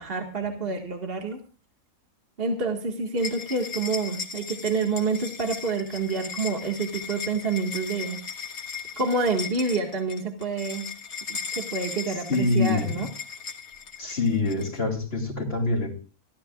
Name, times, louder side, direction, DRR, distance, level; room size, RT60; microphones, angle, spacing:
voice 1, 0.0-1.4 2.4-8.2 9.0-10.9 11.3-13.1, right 4 dB, 40° right, 2 dB, 2.0 m, -28 dB
sound 1, 3.2-14.8, left 6 dB, 70° left, 2.4 m, -37 dB
voice 2, 12.3-13.1 14.0-15.9, left 3 dB, 40° left, 3 dB, 3.3 m, -25 dB
26.0 x 13.5 x 2.4 m, 0.37 s
omnidirectional pair, 1.6 m